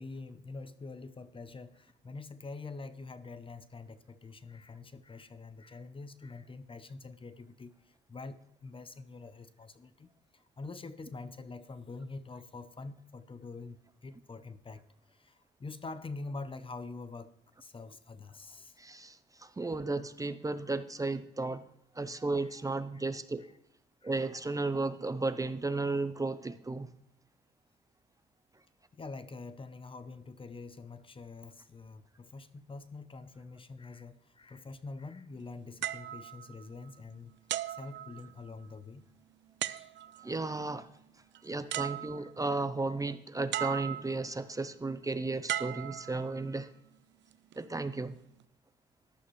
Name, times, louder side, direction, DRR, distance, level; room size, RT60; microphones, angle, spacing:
voice 1, 0.0-18.8 22.3-22.6 22.9-23.1 23.4-23.5 24.0-24.2 28.9-37.3 37.7-39.1 39.6-39.9 41.7-41.9 42.2-42.3 42.8-42.9, left 3 dB, 25° left, 0.7 m, -46 dB
voice 2, 18.8-21.6 22.0-23.4 24.0-26.9 40.2-40.9 41.4-46.7 47.6-48.1, right 3 dB, 15° right, 0.6 m, -34 dB
sound 1, 35.8-37.0 37.5-38.7 39.6-40.3 41.3-41.4 41.7-42.5 43.5-44.3 45.5-46.6 47.3-47.6, right 12 dB, 65° right, 0.5 m, -37 dB
14.5 x 11.5 x 3.2 m
cardioid pair, 90°, 20 cm